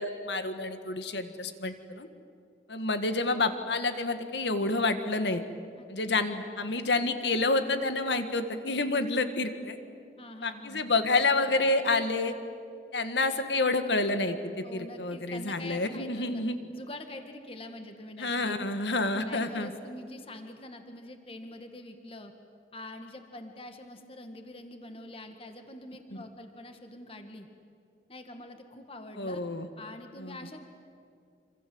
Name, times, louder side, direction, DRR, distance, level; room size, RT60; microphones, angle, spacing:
voice 1, 0.0-2.1 2.7-5.4 5.9-9.8 10.4-12.3 12.9-14.4 14.7-16.6 18.2-19.7 29.2-29.7 30.2-30.4, left 3 dB, 80° left, 9 dB, 1.8 m, -28 dB
voice 2, 5.8-6.4 10.2-10.9 14.6-16.4 16.7-18.6 19.3-22.3 22.7-27.5 28.1-29.4 29.8-30.6, left 1 dB, 30° left, 6 dB, 1.9 m, -45 dB
26.5 x 26.5 x 7.9 m, 2.4 s
head